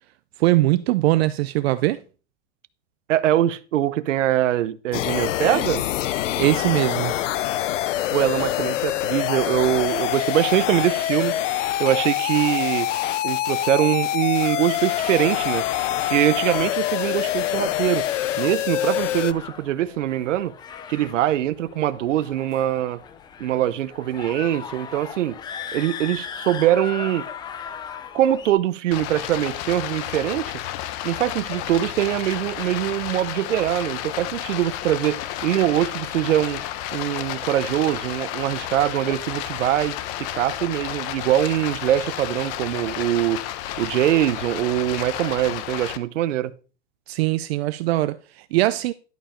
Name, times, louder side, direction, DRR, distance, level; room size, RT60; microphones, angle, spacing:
voice 1, 0.4-2.0 6.4-7.1 47.1-48.9, right 17 dB, 60° right, 0.5 m, -21 dB
voice 2, 3.1-5.8 8.1-11.4 11.8-12.9 13.2-15.7 16.1-18.1 18.4-20.5 20.9-23.0 23.4-25.3 25.7-27.3 28.1-30.6 31.0-36.6 36.9-43.5 43.8-46.5, right 12 dB, 85° right, 0.8 m, -23 dB
sound 1, 4.9-19.3, left 13 dB, 85° left, 0.7 m, -25 dB
sound 2, 14.4-28.5, left 7 dB, 10° left, 0.4 m, -38 dB
Stream, 28.9-46.0, left 12 dB, 40° left, 0.9 m, -32 dB
11.5 x 5.0 x 5.1 m
supercardioid pair, 140°, 36 cm